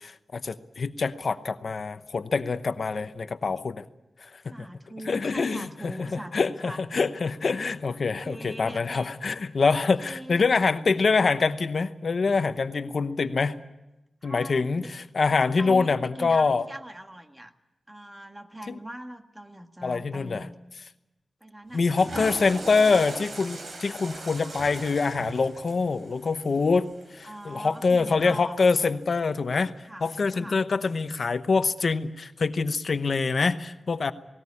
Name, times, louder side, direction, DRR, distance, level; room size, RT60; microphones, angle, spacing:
voice 1, 0.0-3.8 4.2-4.7 5.1-13.6 14.2-16.6 18.7-18.8 19.8-20.5 21.7-34.1, left 4 dB, 60° left, 10 dB, 0.9 m, -25 dB
voice 2, 4.5-6.8 8.0-9.1 10.0-10.5 14.2-14.9 15.3-17.5 17.9-20.6 21.4-22.4 27.2-28.6 29.8-30.1 30.4-30.6, right 1 dB, 15° right, 6 dB, 1.6 m, -41 dB
Water / Toilet flush, 21.7-27.9, right 2 dB, 60° right, 4.1 m, -40 dB
19.0 x 18.5 x 9.8 m, 0.97 s
wide cardioid pair, 105°, 0 cm